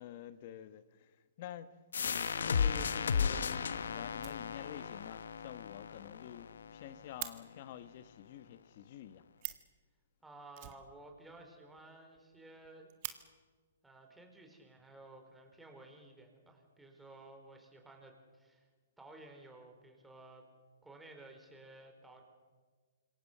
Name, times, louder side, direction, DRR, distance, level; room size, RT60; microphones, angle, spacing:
voice 1, 0.0-1.7 2.0-9.2, left 11 dB, 45° left, 1.3 m, -49 dB
sound 1, 1.9-7.3, left 6 dB, 80° left, 1.1 m, -35 dB
Fire, 4.1-5.0 5.3-5.4 5.7-5.8 6.0-6.1 6.4-7.4 9.1-9.2 9.4-9.8 10.5-11.5 11.8-11.9 12.1-12.2 12.6-13.2 14.2-14.3 14.9-15.5, right 17 dB, 35° right, 1.8 m, -46 dB
voice 2, 10.2-12.9 13.8-18.7 19.0-20.4 20.8-22.2, right 2 dB, 5° right, 4.2 m, -55 dB
27.0 x 23.0 x 6.8 m
hypercardioid pair, 155°, 0 cm